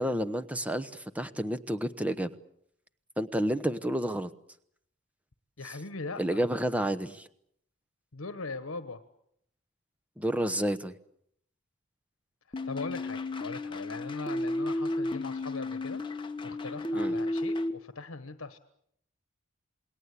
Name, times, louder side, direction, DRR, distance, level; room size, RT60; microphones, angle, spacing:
voice 1, 0.0-2.3 3.2-4.3 5.6-5.8 6.2-7.3 10.2-10.9 16.9-17.1, right 1 dB, 5° right, 9 dB, 1.0 m, -30 dB
voice 2, 5.6-6.4 8.1-9.0 12.6-18.6, left 3 dB, 75° left, 10 dB, 1.3 m, -40 dB
sound 1, 12.5-17.7, left 2 dB, 25° left, 1.3 m, -33 dB
28.0 x 21.0 x 8.4 m, 0.71 s
head